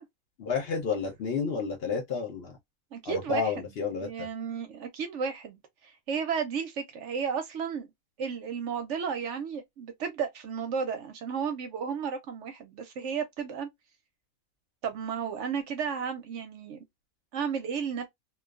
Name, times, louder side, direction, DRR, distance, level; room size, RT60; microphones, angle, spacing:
voice 1, 0.4-2.6 3.0-4.3, left 5 dB, 55° left, 0.7 m, -31 dB
voice 2, 2.9-3.5 4.0-7.9 8.2-13.7 14.8-16.8 17.3-18.1, right 6 dB, 70° right, 0.8 m, -33 dB
2.3 x 2.2 x 2.3 m
omnidirectional pair, 1.5 m